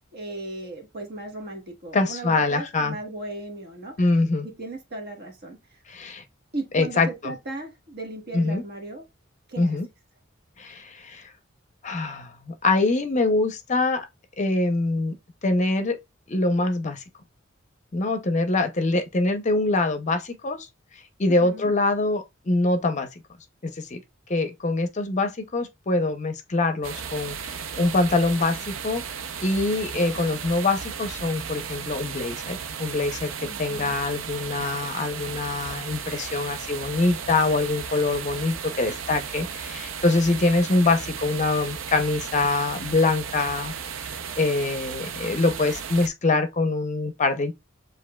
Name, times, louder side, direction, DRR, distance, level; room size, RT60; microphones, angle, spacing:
voice 1, 0.1-4.1 4.4-5.8 6.5-9.1 9.5-9.8 21.3-21.7 33.4-34.0, right 2 dB, 55° right, 1.2 m, -37 dB
voice 2, 1.9-3.0 4.0-4.5 5.9-6.2 6.7-7.3 8.3-8.6 9.6-9.9 10.6-11.2 11.8-14.1 14.4-15.1 15.4-16.0 16.3-17.0 17.9-20.7 21.2-23.1 23.6-24.0 24.3-29.0 29.4-43.7 44.4-47.5, left 2 dB, 35° left, 0.6 m, -24 dB
sound 1, 26.8-46.1, right 7 dB, 80° right, 0.5 m, -35 dB
7.4 x 2.6 x 2.2 m
head